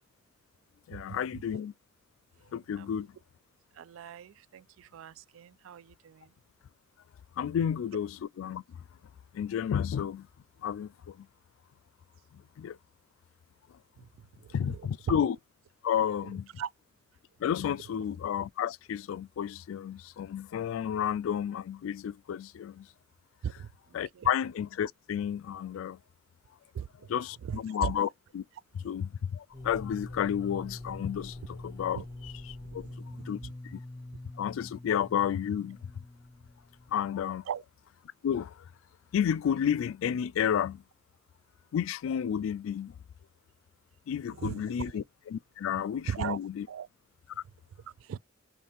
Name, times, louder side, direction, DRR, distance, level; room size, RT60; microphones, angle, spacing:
voice 1, 0.9-1.7 2.5-3.1 7.4-8.6 9.3-10.3 10.6-11.3 12.6-12.8 14.5-15.4 15.8-16.5 17.4-22.9 23.9-26.0 27.1-28.4 28.8-32.9 33.3-33.4 33.7-33.8 34.4-35.8 36.9-37.4 38.2-38.5 39.1-40.8 41.7-42.9 44.1-46.7, left 8 dB, 80° left, 0.3 m, -31 dB
voice 2, 3.8-6.3 14.4-14.7 16.6-16.7 23.4-23.7 24.1-24.3 26.7-27.1 27.4-27.9 31.9-32.1 32.7-33.2 37.5-37.6 44.4-44.6 46.0-46.4 46.7-46.9 48.1-48.2, right 8 dB, 80° right, 0.3 m, -38 dB
sound 1, 29.5-37.2, left 2 dB, 20° left, 1.9 m, -45 dB
4.1 x 3.2 x 3.5 m
head